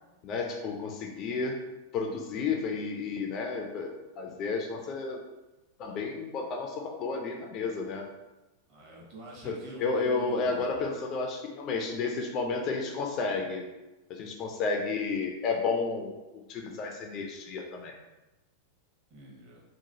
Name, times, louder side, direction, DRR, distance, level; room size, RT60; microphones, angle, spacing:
voice 1, 0.2-1.6 1.9-5.2 5.8-8.0 9.4-13.6 14.1-17.9, left 4 dB, 35° left, 2 dB, 0.4 m, -32 dB
voice 2, 8.7-10.8 19.1-19.6, right 1 dB, 40° right, -4 dB, 1.0 m, -46 dB
3.0 x 2.2 x 2.6 m, 1.0 s
figure-of-eight pair, 90°, 0 cm